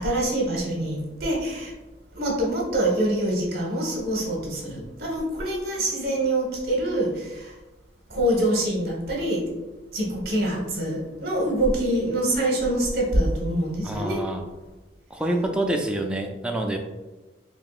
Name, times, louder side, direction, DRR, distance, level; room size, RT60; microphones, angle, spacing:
voice 1, 0.0-1.7 2.1-7.5 8.1-9.4 9.9-14.2, right 1 dB, 55° right, -2 dB, 1.2 m, -25 dB
voice 2, 13.8-14.5 15.1-16.8, right 1 dB, 5° right, 2 dB, 0.3 m, -27 dB
4.7 x 3.0 x 2.4 m, 1.1 s
head